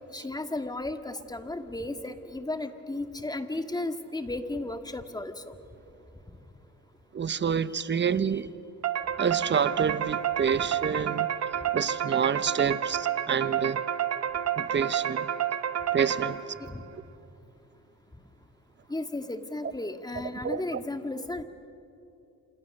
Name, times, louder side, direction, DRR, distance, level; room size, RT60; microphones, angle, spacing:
voice 1, 0.1-5.6 16.6-16.8 18.9-21.4, left 2 dB, 15° left, 8 dB, 1.8 m, -34 dB
voice 2, 7.1-8.5 9.2-11.3 11.7-13.8 14.6-15.3 15.9-16.5 20.4-20.8, right 7 dB, 40° right, 15 dB, 1.0 m, -28 dB
sound 1, 8.8-16.7, right 9 dB, 55° right, 1.4 m, -29 dB
28.5 x 27.5 x 6.7 m, 2.8 s
cardioid pair, 90°, 30 cm